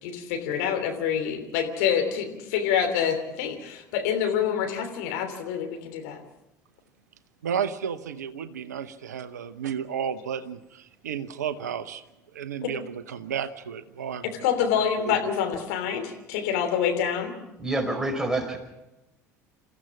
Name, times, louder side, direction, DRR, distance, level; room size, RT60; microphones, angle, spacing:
voice 1, 0.0-6.2 12.6-12.7 14.4-17.3, left 8 dB, 65° left, 4 dB, 3.1 m, -26 dB
voice 2, 7.4-12.0 12.3-14.3 15.0-15.2, right 8 dB, 75° right, 12 dB, 0.9 m, -32 dB
voice 3, 17.6-18.6, right 2 dB, 5° right, 3 dB, 5.0 m, -27 dB
28.5 x 15.0 x 6.1 m, 0.95 s
figure-of-eight pair, 65°, 9 cm